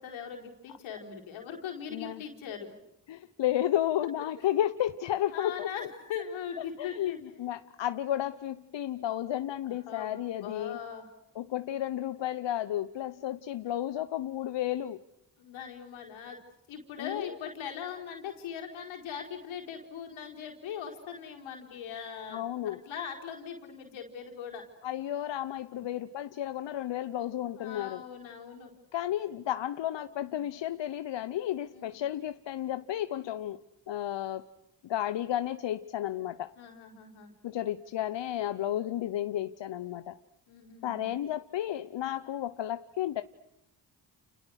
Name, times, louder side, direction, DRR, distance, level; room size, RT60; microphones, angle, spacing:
voice 1, 0.0-2.7 5.3-7.2 9.6-11.1 15.4-16.4 16.7-24.6 27.6-28.7 31.7-31.9 36.6-37.3 40.5-41.1, left 7 dB, 90° left, 1 dB, 4.5 m, -40 dB
voice 2, 1.9-2.2 3.1-5.7 6.6-10.8 11.4-15.0 17.0-17.3 22.3-22.8 24.8-28.0 28.9-34.4 34.8-36.5 37.4-40.2 40.8-43.2, left 12 dB, 65° left, 12 dB, 0.9 m, -32 dB
30.0 x 29.0 x 6.5 m, 0.84 s
supercardioid pair, 45°, 46 cm